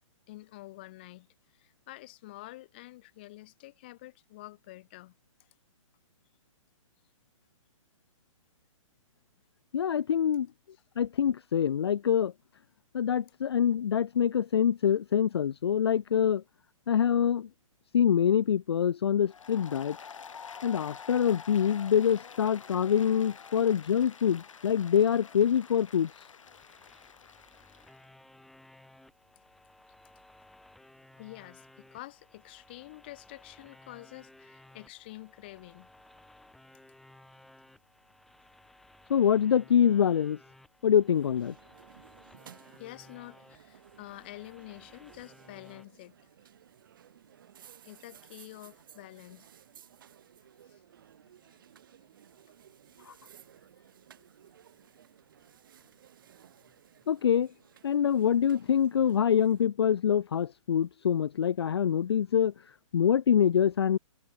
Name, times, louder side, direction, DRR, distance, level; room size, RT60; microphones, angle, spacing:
voice 1, 0.3-1.3 1.6-5.1 31.2-35.9 42.8-46.1 47.8-49.5 50.7-50.8, left 18 dB, 20° left, 0.8 m, -48 dB
voice 2, 9.7-10.5 11.0-12.3 12.9-16.4 16.9-17.5 17.9-20.0 20.6-26.1 39.1-40.4 40.8-41.5 53.1-53.2 57.1-57.5 57.8-62.5 62.9-64.0, left 8 dB, 50° left, 0.4 m, -25 dB
Applause, 19.2-28.0, left 6 dB, 65° left, 6.1 m, -48 dB
sound 1, 26.5-45.9, left 1 dB, ahead, 2.1 m, -58 dB
sound 2, 41.1-59.7, right 10 dB, 40° right, 4.8 m, -57 dB
hypercardioid pair, 175°, 17 cm